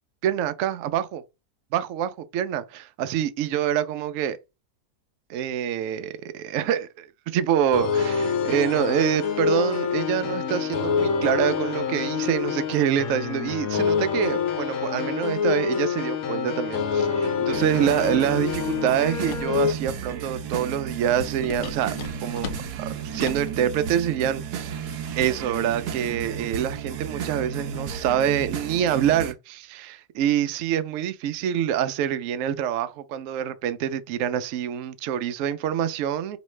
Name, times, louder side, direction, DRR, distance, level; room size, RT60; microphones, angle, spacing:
voice 1, 0.2-1.2 1.7-4.4 5.3-21.9 22.2-24.8 25.2-36.4, right 9 dB, 70° right, 0.8 m, -26 dB
sound 1, 7.7-19.7, left 6 dB, 60° left, 1.1 m, -26 dB
sound 2, 17.5-29.3, right 7 dB, 85° right, 1.2 m, -33 dB
sound 3, 19.3-19.6 21.4-23.5, left 7 dB, 80° left, 1.2 m, -37 dB
4.4 x 3.1 x 3.1 m
omnidirectional pair, 1.7 m